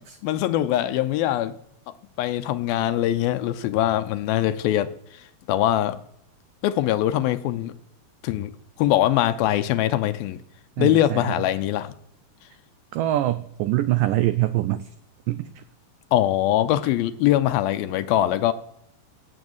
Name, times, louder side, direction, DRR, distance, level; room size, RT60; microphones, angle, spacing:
voice 1, 0.2-1.6 2.2-6.0 6.6-7.7 8.2-8.5 8.8-10.4 10.8-11.9 16.1-18.5, left 13 dB, 80° left, 2.4 m, -22 dB
voice 2, 10.8-11.3 12.9-14.8 15.3-15.6, right 15 dB, 85° right, 1.9 m, -24 dB
16.0 x 7.7 x 8.0 m
omnidirectional pair, 4.6 m